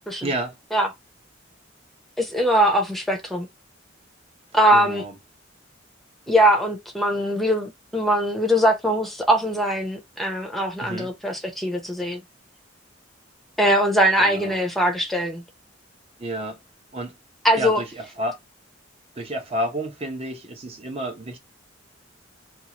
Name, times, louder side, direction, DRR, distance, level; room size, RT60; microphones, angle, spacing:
voice 1, 0.2-0.6 4.7-5.1 10.8-11.1 14.2-14.5 16.2-16.6 16.9-17.2 17.6-18.4 19.2-21.4, right 1 dB, 30° right, 0.9 m, -30 dB
voice 2, 2.2-3.5 4.5-5.0 6.3-12.2 13.6-15.4 17.4-17.8, equal, ahead, 0.7 m, -21 dB
2.7 x 2.4 x 2.9 m
head